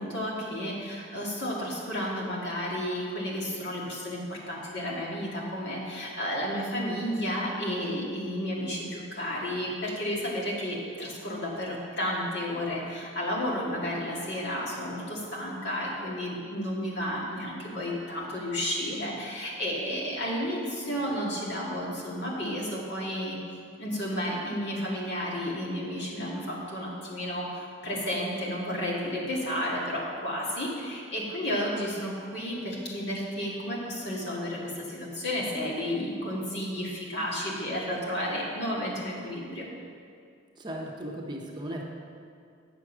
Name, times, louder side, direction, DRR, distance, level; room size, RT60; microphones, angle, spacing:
voice 1, 0.0-23.4 23.8-39.7, equal, 60° left, -4 dB, 1.9 m, -32 dB
voice 2, 40.6-41.8, right 1 dB, 20° right, -1 dB, 0.8 m, -36 dB
8.3 x 6.4 x 6.1 m, 2.2 s
head